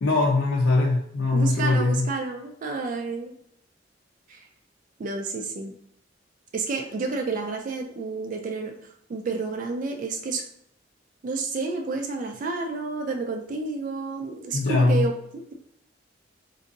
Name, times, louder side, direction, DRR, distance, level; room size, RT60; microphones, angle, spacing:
voice 1, 0.0-2.1 14.5-15.1, left 2 dB, 80° left, -3 dB, 0.5 m, -21 dB
voice 2, 1.3-3.3 4.3-4.5 5.0-5.7 6.5-8.8 9.1-10.4 11.2-15.5, right 3 dB, 45° right, 4 dB, 0.3 m, -30 dB
3.9 x 2.5 x 2.5 m, 0.70 s
head